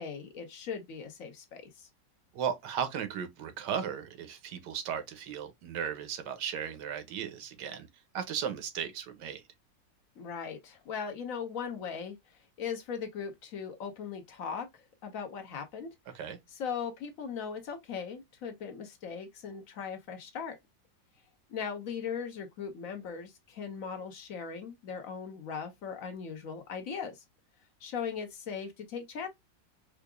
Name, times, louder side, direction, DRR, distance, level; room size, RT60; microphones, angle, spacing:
voice 1, 0.0-1.9 10.2-12.2 12.6-15.9 16.5-20.6 21.5-27.2 27.8-29.3, left 6 dB, 60° left, 1.0 m, -39 dB
voice 2, 2.3-7.9 8.1-9.4 16.1-16.4, right 8 dB, 75° right, 1.3 m, -36 dB
4.7 x 2.4 x 2.3 m
omnidirectional pair, 1.9 m